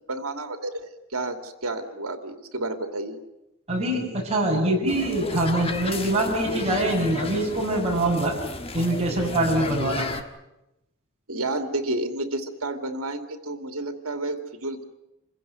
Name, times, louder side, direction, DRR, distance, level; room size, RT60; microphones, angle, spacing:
voice 1, 0.1-0.8 1.1-3.2 11.3-14.8, right 2 dB, 85° right, 7 dB, 2.6 m, -30 dB
voice 2, 3.7-8.3 8.7-10.1, right 1 dB, 30° right, -2 dB, 6.9 m, -24 dB
sound 1, 4.9-10.2, left 2 dB, 25° left, 1.4 m, -33 dB
27.0 x 16.0 x 9.5 m, 0.91 s
head